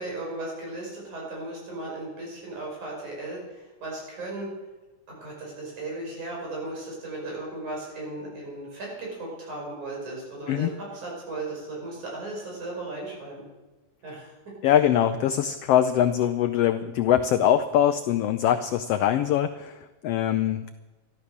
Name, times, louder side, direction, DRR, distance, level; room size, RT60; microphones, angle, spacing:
voice 1, 0.0-4.5 5.1-13.5 14.0-14.3, right 2 dB, 75° right, -3 dB, 6.9 m, -36 dB
voice 2, 14.6-20.7, left 10 dB, 90° left, 10 dB, 1.3 m, -23 dB
13.5 x 12.5 x 6.6 m, 1.1 s
omnidirectional pair, 3.5 m